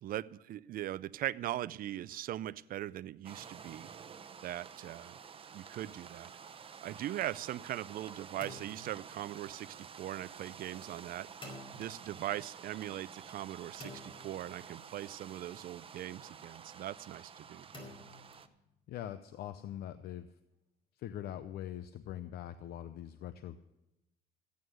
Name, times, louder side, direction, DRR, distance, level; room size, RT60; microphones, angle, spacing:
voice 1, 0.0-3.9 4.4-5.2 5.5-6.3 6.7-11.3 11.7-17.7, right 13 dB, 60° right, 19 dB, 0.5 m, -40 dB
sound 1, 3.2-18.5, right 6 dB, 35° right, 0.9 m, -51 dB
sound 2, 8.4-9.7 11.4-12.4 13.8-15.0 17.7-18.9, left 1 dB, 30° left, 4.8 m, -51 dB
voice 2, 18.9-20.3 21.0-23.6, left 11 dB, 70° left, 12 dB, 0.7 m, -42 dB
14.5 x 9.5 x 6.4 m, 0.95 s
cardioid pair, 110°, 17 cm